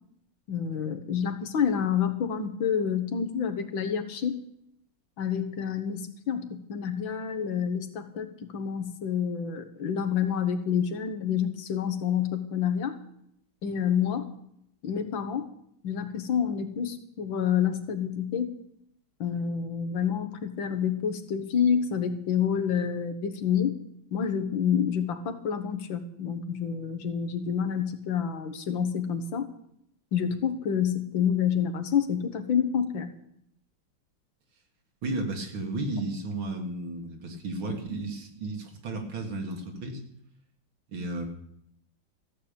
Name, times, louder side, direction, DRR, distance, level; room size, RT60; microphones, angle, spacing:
voice 1, 0.5-4.4 5.2-13.0 13.6-14.3 14.8-15.5 15.8-18.6 19.2-23.8 24.1-29.5 30.1-33.1, left 7 dB, 75° left, 8 dB, 1.9 m, -28 dB
voice 2, 35.0-40.0 40.9-41.3, right 2 dB, 85° right, 3 dB, 2.8 m, -33 dB
14.5 x 6.7 x 8.8 m, 0.73 s
omnidirectional pair, 2.2 m